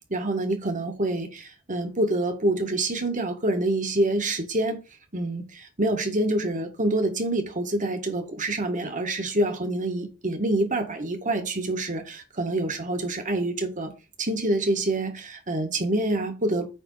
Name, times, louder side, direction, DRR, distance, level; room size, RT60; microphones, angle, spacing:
voice 1, 0.1-4.8 5.1-13.9 14.2-16.7, right 1 dB, 35° right, 2.0 m, -26 dB
9.0 x 4.0 x 5.8 m
head